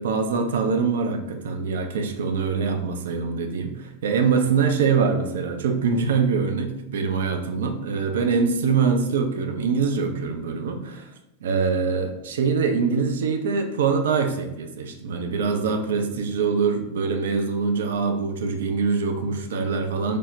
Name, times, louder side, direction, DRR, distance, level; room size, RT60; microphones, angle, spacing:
voice 1, 0.0-11.1 11.4-20.2, right 5 dB, 60° right, 6 dB, 0.3 m, -24 dB
3.2 x 2.0 x 2.5 m, 0.91 s
figure-of-eight pair, 90°, 0 cm